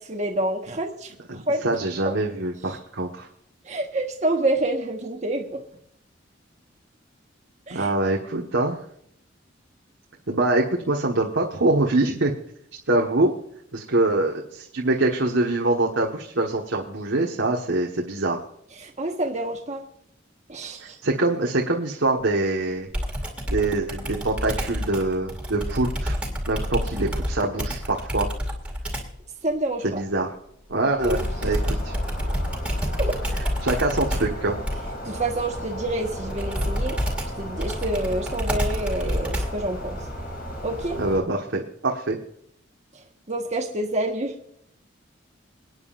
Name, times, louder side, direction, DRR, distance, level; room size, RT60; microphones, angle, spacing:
voice 1, 0.1-1.6 2.0-2.2 3.7-5.6 7.7-7.9 18.8-19.8 20.5-20.9 29.4-30.0 31.0-31.2 33.0-33.2 35.1-37.0 37.4-40.0 40.6-41.0 43.3-44.3, right 1 dB, 35° right, 2 dB, 1.4 m, -27 dB
voice 2, 1.3-3.3 7.7-8.8 10.3-12.3 12.9-13.3 13.7-18.4 20.8-22.9 23.5-26.2 26.5-28.3 29.8-30.3 30.7-31.9 33.6-34.6 41.0-42.2, right 2 dB, 85° right, -1 dB, 1.5 m, -24 dB
Computer keyboard, 22.9-29.2 31.0-39.7, equal, 5° right, 2.3 m, -28 dB
sound 1, 31.0-41.2, equal, 50° left, 3.9 m, -35 dB
28.5 x 9.5 x 2.6 m, 0.70 s
head